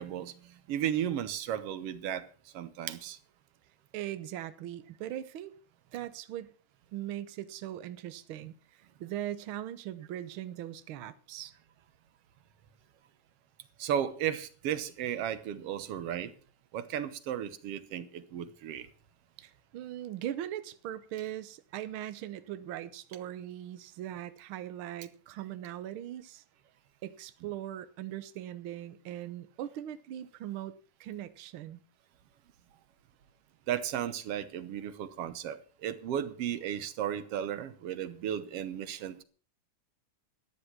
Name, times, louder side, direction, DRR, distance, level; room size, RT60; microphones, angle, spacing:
voice 1, 0.0-2.3 2.5-3.2 13.8-16.3 16.7-18.9 33.7-39.2, right 10 dB, 65° right, 1.7 m, -34 dB
voice 2, 3.9-5.5 5.9-6.5 6.9-8.5 9.0-11.5 19.4-26.4 27.0-30.7 31.0-31.8, right 12 dB, 85° right, 1.1 m, -40 dB
13.0 x 10.0 x 5.8 m
omnidirectional pair, 3.6 m